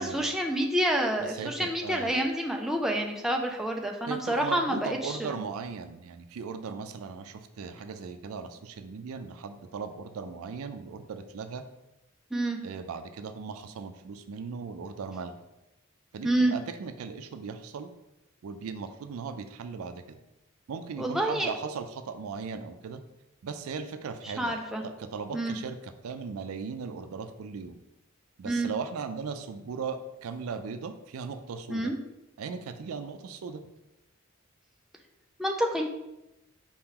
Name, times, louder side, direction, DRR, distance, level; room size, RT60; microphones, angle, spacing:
voice 1, 0.0-5.4 12.3-12.6 16.2-16.5 21.0-21.5 24.2-24.8 25.3-25.5 28.4-28.7 31.7-32.0 35.4-35.9, right 1 dB, ahead, 1 dB, 0.3 m, -28 dB
voice 2, 1.3-2.1 4.1-11.6 12.6-15.4 16.1-17.9 18.4-20.2 20.7-23.0 23.4-27.8 28.4-31.9 32.4-33.6, right 5 dB, 85° right, 9 dB, 0.4 m, -38 dB
4.5 x 2.9 x 3.6 m, 0.93 s
head